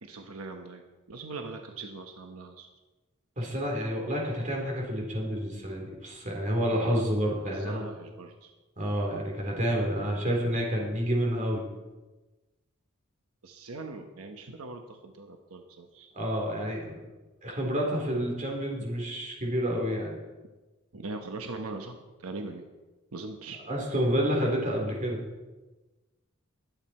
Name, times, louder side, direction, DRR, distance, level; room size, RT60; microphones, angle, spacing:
voice 1, 0.0-2.7 6.7-7.1 7.5-8.5 13.4-16.1 20.9-22.7 23.1-23.6, right 3 dB, 85° right, 4 dB, 1.1 m, -41 dB
voice 2, 3.4-7.9 8.8-11.6 16.1-17.0 17.4-20.2 23.7-25.3, equal, 35° right, -1 dB, 3.6 m, -29 dB
21.5 x 8.3 x 4.3 m, 1.2 s
head